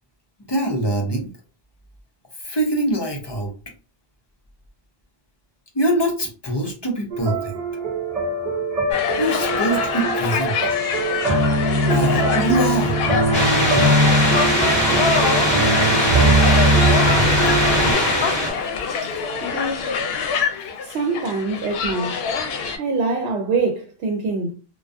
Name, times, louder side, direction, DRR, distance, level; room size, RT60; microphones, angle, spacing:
voice 1, 0.5-1.3 2.4-3.5 5.7-7.5 9.2-10.6 11.9-13.0, right 1 dB, 35° left, 0.5 m, -23 dB
sound 1, 7.1-17.9, right 2 dB, 45° right, 0.6 m, -21 dB
sound 2, 8.9-22.8, left 6 dB, 75° left, 0.8 m, -25 dB
sound 3, 13.3-18.5, equal, 20° left, 0.9 m, -20 dB
voice 2, 19.4-20.0 20.8-22.3 22.8-24.5, right 3 dB, 85° right, 0.8 m, -24 dB
2.3 x 2.2 x 2.4 m
omnidirectional pair, 1.0 m